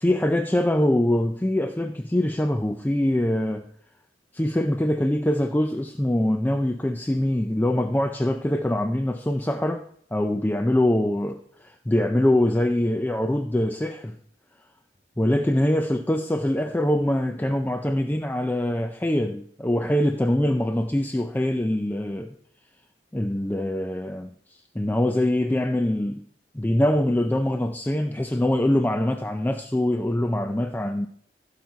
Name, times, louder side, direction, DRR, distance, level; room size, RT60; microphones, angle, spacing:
voice 1, 0.0-3.7 4.3-9.8 10.1-14.2 15.2-22.3 23.1-24.3 24.8-26.2 26.5-31.1, left 1 dB, 10° left, 0.4 m, -23 dB
15.5 x 5.8 x 4.6 m
head